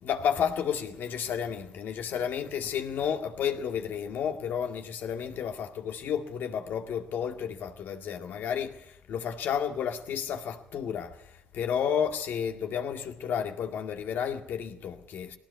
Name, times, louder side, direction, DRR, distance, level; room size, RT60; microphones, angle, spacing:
voice 1, 0.0-15.4, left 8 dB, 80° left, 2.0 m, -32 dB
20.0 x 17.5 x 8.1 m
cardioid pair, 75°, 3 cm